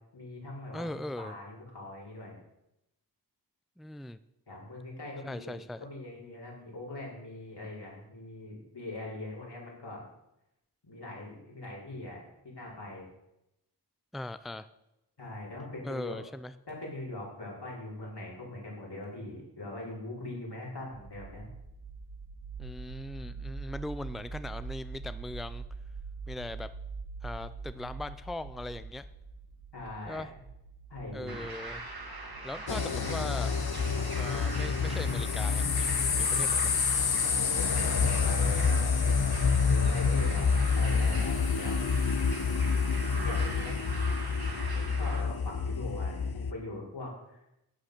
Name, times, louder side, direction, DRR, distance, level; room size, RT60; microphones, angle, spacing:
voice 1, 0.1-2.4 4.5-5.5 5.8-10.0 10.8-13.1 15.2-16.2 16.7-21.5 29.7-30.2 30.9-31.4 32.7-32.8 37.4-38.8 39.6-40.5 40.7-41.8 43.0-43.9 44.7-47.1, left 2 dB, 80° left, -4 dB, 5.2 m, -41 dB
voice 2, 0.7-1.4 3.8-4.2 5.2-5.8 14.1-14.7 15.8-16.5 22.6-25.6 26.3-26.7 27.2-29.0 30.1-30.3 31.1-31.9 32.4-33.5 34.2-36.8, left 1 dB, ahead, 13 dB, 0.5 m, -39 dB
sound 1, 20.9-33.1, right 4 dB, 85° right, 1.5 m, -44 dB
sound 2, 31.3-45.2, right 2 dB, 65° right, 2.4 m, -41 dB
sound 3, 32.7-46.5, left 5 dB, 65° left, 0.8 m, -28 dB
11.5 x 8.7 x 6.7 m, 0.87 s
wide cardioid pair, 55°, 40 cm